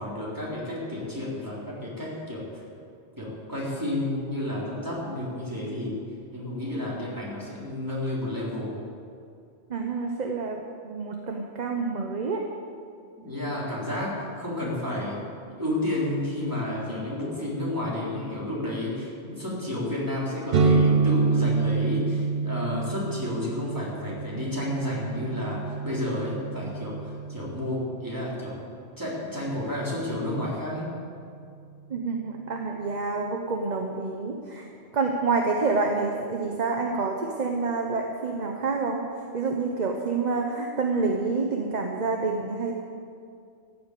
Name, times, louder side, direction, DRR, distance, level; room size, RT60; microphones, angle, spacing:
voice 1, 0.0-2.4 3.2-6.0 6.3-8.8 13.2-15.2 15.6-28.6 29.0-30.9, left 1 dB, 15° right, -6 dB, 3.8 m, -31 dB
voice 2, 9.7-12.4 31.9-34.7 34.9-39.0 39.3-42.7, right 4 dB, 40° right, 2 dB, 1.0 m, -28 dB
sound 1, 20.5-28.1, right 4 dB, 60° right, 0.9 m, -27 dB
14.5 x 8.2 x 8.5 m, 2.4 s
omnidirectional pair, 1.2 m